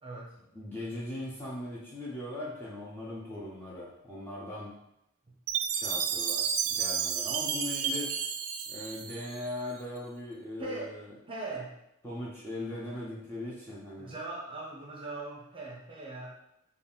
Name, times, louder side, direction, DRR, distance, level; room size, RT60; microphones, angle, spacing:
voice 1, 0.0-0.3 10.6-11.0 11.3-11.7 14.0-16.3, right 2 dB, 25° right, -3 dB, 0.8 m, -40 dB
voice 2, 0.5-4.8 5.7-8.1 8.7-11.1 12.0-14.1, left 1 dB, 10° left, -7 dB, 0.6 m, -39 dB
Chime, 5.5-9.7, right 7 dB, 80° right, 0.4 m, -32 dB
4.2 x 2.3 x 3.6 m, 0.82 s
head